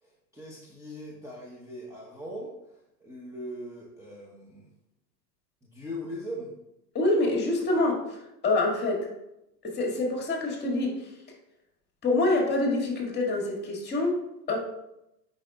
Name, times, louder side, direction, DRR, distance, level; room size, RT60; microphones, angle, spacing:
voice 1, 0.0-4.7 5.6-6.5, equal, 5° right, -5 dB, 1.0 m, -40 dB
voice 2, 6.9-9.1 9.6-10.9 12.0-14.2 14.5-14.6, left 2 dB, 20° left, 0 dB, 2.1 m, -26 dB
8.5 x 5.6 x 2.4 m, 0.87 s
hypercardioid pair, 110°, 48 cm